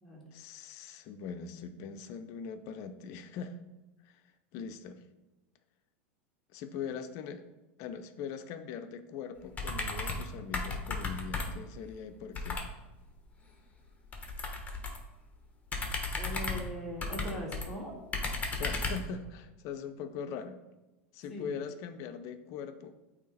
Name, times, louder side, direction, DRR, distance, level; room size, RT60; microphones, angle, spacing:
voice 1, 0.3-3.6 4.0-4.2 4.5-5.0 6.5-7.5 7.8-12.7 18.5-20.6 21.1-23.0, left 6 dB, 55° left, 9 dB, 0.6 m, -41 dB
sound 1, 9.5-10.3 10.5-11.7 12.3-12.7 14.1-15.1 15.7-17.7 18.1-19.1, left 3 dB, 20° left, 1.2 m, -35 dB
voice 2, 16.2-17.9 21.3-21.6, equal, 5° left, -5 dB, 1.9 m, -40 dB
8.2 x 2.9 x 4.1 m, 1.1 s
hypercardioid pair, 100°, 7 cm